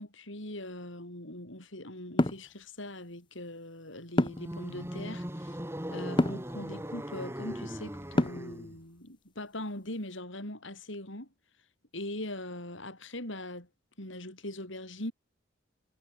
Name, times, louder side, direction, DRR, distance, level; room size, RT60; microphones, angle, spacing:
voice 1, 0.0-5.6 5.9-11.3 11.9-13.7 14.0-15.1, left 1 dB, 70° left, 7.6 m, -41 dB
sound 1, 2.2-2.5 4.2-4.6 6.2-6.5 8.2-8.6, left 1 dB, 25° left, 0.7 m, -26 dB
sound 2, 4.2-8.8, equal, 10° right, 2.7 m, -39 dB
head